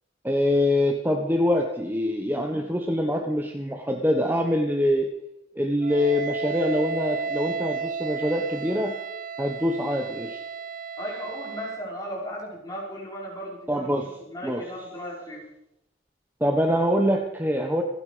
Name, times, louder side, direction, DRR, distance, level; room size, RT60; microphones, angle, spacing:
voice 1, 0.2-5.1 5.6-8.9 9.4-10.4 13.7-14.1 14.4-14.6 16.4-17.8, left 1 dB, 10° right, 3 dB, 1.2 m, -24 dB
Wind instrument woodwind instrument, 5.8-12.0, right 5 dB, 45° right, 0.7 m, -33 dB
voice 2, 11.0-14.0 14.3-15.5, equal, 20° left, -3 dB, 5.7 m, -36 dB
27.5 x 9.7 x 5.1 m, 0.82 s
head